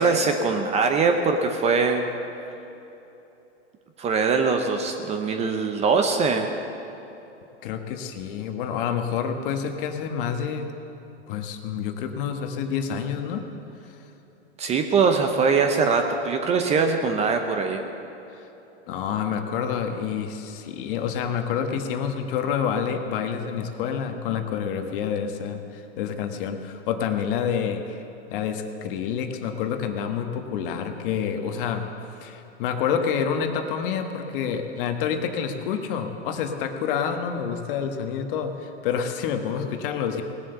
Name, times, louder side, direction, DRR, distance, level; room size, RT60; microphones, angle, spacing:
voice 1, 0.0-2.1 4.0-6.5 14.6-17.8, right 4 dB, 20° right, 5 dB, 0.7 m, -22 dB
voice 2, 7.6-10.7 11.3-13.4 18.9-28.0 28.3-31.9 32.2-40.2, left 7 dB, 45° left, 6 dB, 1.3 m, -28 dB
18.5 x 7.8 x 6.8 m, 3.0 s
hypercardioid pair, 130°, 36 cm